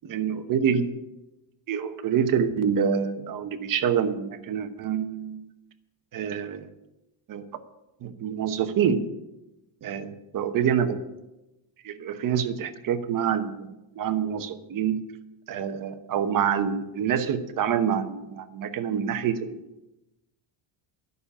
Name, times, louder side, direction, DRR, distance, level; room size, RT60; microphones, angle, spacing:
voice 1, 0.1-0.9 1.7-5.4 6.1-6.7 7.3-7.4 8.0-9.0 9.8-11.0 11.8-15.0 15.5-19.6, right 8 dB, 40° right, 9 dB, 1.1 m, -26 dB
12.5 x 6.7 x 9.9 m, 0.98 s
cardioid pair, 160°, 49 cm